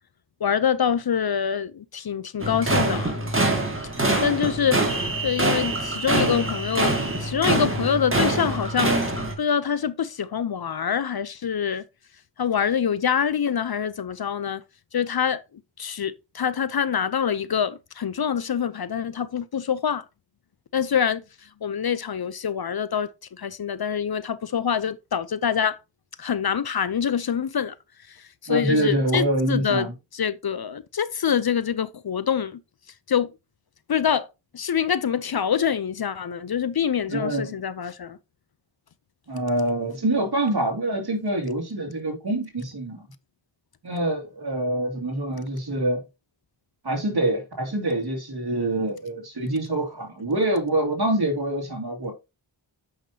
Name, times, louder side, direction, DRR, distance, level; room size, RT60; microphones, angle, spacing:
voice 1, 0.4-3.2 3.8-4.8 5.2-8.9 9.4-11.8 12.4-14.6 14.9-15.4 15.8-20.0 20.7-21.2 21.6-23.1 23.4-25.8 26.2-27.7 28.1-28.2 28.4-29.9 30.1-32.6 33.1-33.3 33.9-34.3 34.5-38.2, left 7 dB, 55° left, 0.6 m, -25 dB
sound 1, 2.4-9.3, right 2 dB, 25° right, 2.0 m, -24 dB
voice 2, 28.5-29.9 37.1-37.5 39.3-43.1 43.8-46.0 46.8-52.1, right 1 dB, 55° right, 2.6 m, -25 dB
8.4 x 5.8 x 2.8 m
wide cardioid pair, 55°, 45 cm